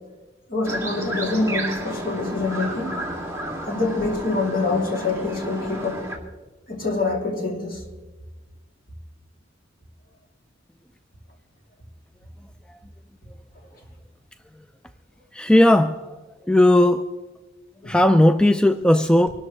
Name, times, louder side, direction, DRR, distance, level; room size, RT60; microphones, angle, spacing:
voice 1, 0.5-3.0 3.7-6.0 6.7-7.8 17.8-18.0, left 3 dB, 50° left, 0 dB, 3.0 m, -25 dB
sound 1, 0.6-6.2, right 1 dB, 15° right, 2.5 m, -31 dB
voice 2, 15.3-16.1 16.4-17.0 17.8-19.3, left 1 dB, 5° left, 9 dB, 0.3 m, -17 dB
25.0 x 13.0 x 3.3 m, 1.2 s
head